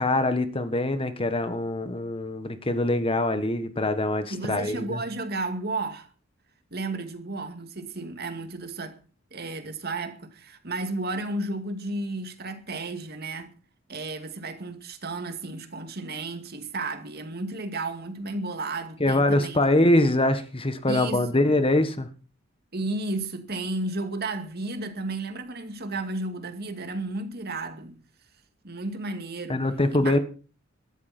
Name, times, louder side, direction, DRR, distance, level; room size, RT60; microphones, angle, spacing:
voice 1, 0.0-5.0 19.0-22.1 29.5-30.2, left 1 dB, 30° left, 1.5 m, -23 dB
voice 2, 4.3-6.1 6.7-9.0 9.3-13.5 13.9-19.6 20.9-21.4 22.7-28.0 28.6-29.6 29.9-30.2, right 2 dB, 50° right, 2.3 m, -33 dB
16.5 x 13.5 x 4.4 m
head